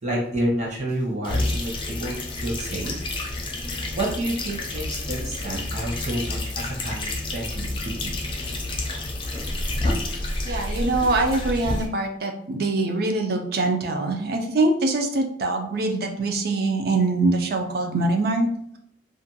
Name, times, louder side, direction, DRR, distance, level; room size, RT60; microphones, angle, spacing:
voice 1, 0.0-3.0 3.9-8.1, right 1 dB, 35° right, -3 dB, 0.8 m, -29 dB
sound 1, 1.2-11.9, left 2 dB, 25° left, 0.4 m, -29 dB
voice 2, 10.4-18.5, right 2 dB, 55° right, 4 dB, 0.4 m, -23 dB
2.5 x 2.2 x 2.7 m, 0.68 s
head